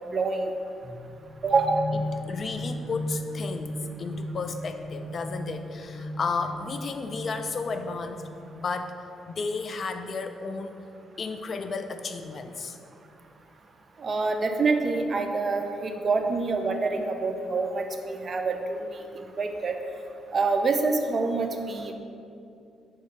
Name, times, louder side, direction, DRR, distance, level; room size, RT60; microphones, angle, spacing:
voice 1, 0.1-0.5 1.4-1.8 14.0-19.8 20.3-21.9, right 3 dB, 40° right, 5 dB, 0.3 m, -26 dB
sound 1, 0.8-8.6, left 1 dB, 70° left, 1.4 m, -37 dB
voice 2, 2.3-8.2 8.5-8.9 9.3-10.7 11.2-12.8, left 4 dB, 45° left, 8 dB, 0.3 m, -33 dB
4.0 x 2.8 x 4.6 m, 2.6 s
cardioid pair, 90°, 0 cm